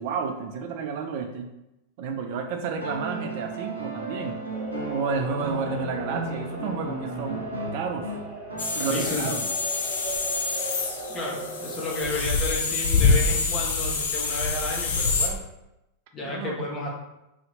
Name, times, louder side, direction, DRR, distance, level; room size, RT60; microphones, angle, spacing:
voice 1, 0.0-1.5 2.0-4.4 4.9-7.4 7.7-8.2 8.7-9.5 16.2-16.6, right 5 dB, 50° right, 4 dB, 0.3 m, -31 dB
sound 1, 2.8-9.2 10.7-10.8, right 2 dB, 80° right, 0.7 m, -35 dB
sound 2, 4.5-12.1, right 2 dB, 10° right, 1.2 m, -38 dB
sound 3, 8.6-15.3, left 4 dB, 55° left, 0.5 m, -26 dB
voice 2, 8.8-9.3 11.1-15.4 16.1-16.9, left 2 dB, 25° left, -2 dB, 0.8 m, -32 dB
2.7 x 2.1 x 3.8 m, 0.91 s
figure-of-eight pair, 90°, 0 cm